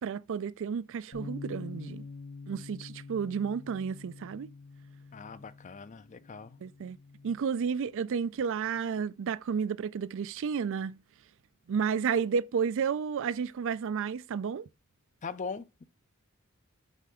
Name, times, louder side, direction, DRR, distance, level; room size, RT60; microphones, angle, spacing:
voice 1, 0.0-2.0 2.5-4.5 6.6-7.0 7.2-11.0 11.7-14.7, right 6 dB, 60° right, 0.4 m, -31 dB
Bass guitar, 1.1-7.4, left 3 dB, 65° left, 2.3 m, -46 dB
voice 2, 5.1-6.6 15.2-15.8, left 5 dB, 35° left, 0.5 m, -41 dB
8.2 x 3.4 x 6.2 m
head